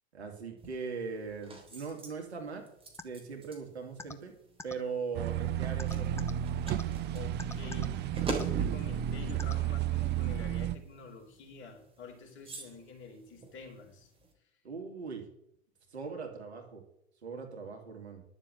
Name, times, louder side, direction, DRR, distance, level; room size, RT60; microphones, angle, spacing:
voice 1, 0.1-2.6 3.0-4.3 4.6-6.2 14.6-15.3 15.9-16.8 17.2-18.2, right 5 dB, 75° right, 3 dB, 2.7 m, -40 dB
sound 1, 0.6-14.3, right 2 dB, 15° right, 3.6 m, -47 dB
sound 2, 3.0-3.1 4.0-4.1 4.6-4.7 5.8-6.3 6.7-6.8 7.4-7.9 8.3-8.4 9.4-9.5, left 3 dB, 10° left, 0.8 m, -42 dB
sound 3, 5.1-10.7, right 11 dB, 30° right, 0.8 m, -32 dB
voice 2, 6.8-14.1, left 4 dB, 35° left, 1 dB, 4.3 m, -49 dB
11.0 x 7.2 x 8.4 m, 0.76 s
figure-of-eight pair, 85°, 33 cm